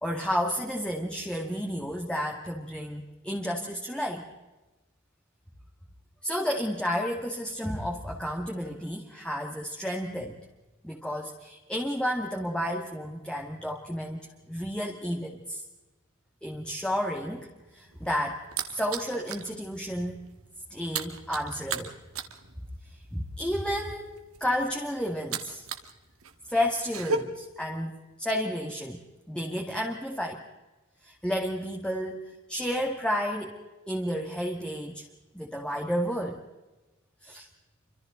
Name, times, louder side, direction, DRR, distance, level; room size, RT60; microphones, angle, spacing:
voice 1, 0.0-4.3 6.2-10.4 10.8-15.6 16.4-17.5 17.7-20.3 20.7-21.9 23.1-24.1 24.4-25.6 26.5-27.9 28.2-30.4 31.0-33.5 33.9-35.0 35.3-36.4 37.2-37.5, equal, 5° left, 0 dB, 2.1 m, -31 dB
sound 1, 17.7-19.5 19.9-20.1 20.3-25.9 26.2-27.2, right 5 dB, 80° right, 2.0 m, -35 dB
29.5 x 25.5 x 3.9 m, 1.1 s
head